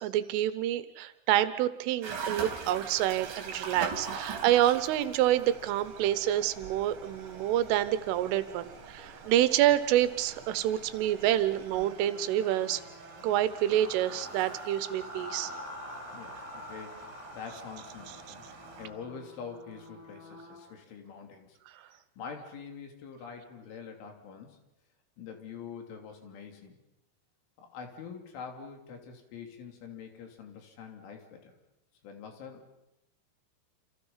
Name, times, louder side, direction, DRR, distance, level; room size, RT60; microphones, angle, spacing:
voice 1, 0.0-12.8 13.2-15.5, right 12 dB, 90° right, 13 dB, 3.6 m, -27 dB
sound 1, 2.0-18.9, right 5 dB, 55° right, 4.1 m, -44 dB
sound 2, 2.1-11.8, right 3 dB, 30° right, 4.3 m, -52 dB
sound 3, 11.7-20.6, left 1 dB, 5° right, 7.0 m, -46 dB
voice 2, 16.1-24.6 25.2-26.8 27.6-31.5 32.0-32.7, left 6 dB, 80° left, 3 dB, 5.5 m, -45 dB
28.5 x 28.0 x 5.7 m, 0.90 s
omnidirectional pair, 5.6 m